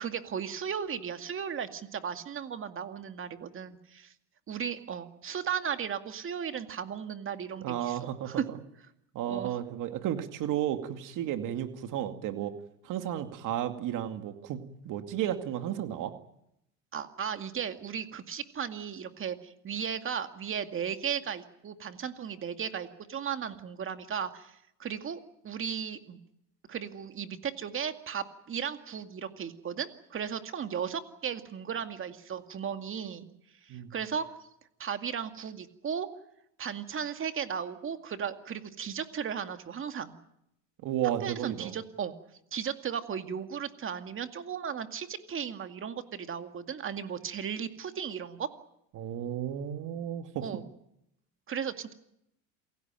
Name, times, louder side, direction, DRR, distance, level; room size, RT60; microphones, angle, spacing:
voice 1, 0.0-4.1 4.5-8.0 8.3-8.4 9.2-9.6 16.9-26.2 26.7-33.3 33.6-34.3 34.8-36.1 36.6-40.2 41.2-42.1 42.5-48.5 50.4-50.6 51.5-51.9, right 7 dB, 35° right, 8 dB, 2.2 m, -36 dB
voice 2, 7.6-8.6 9.1-12.5 12.8-16.1 33.7-33.9 40.8-41.7 48.9-50.4, right 11 dB, 55° right, 7 dB, 2.4 m, -33 dB
28.0 x 16.5 x 9.0 m, 0.79 s
supercardioid pair, 115°, 37 cm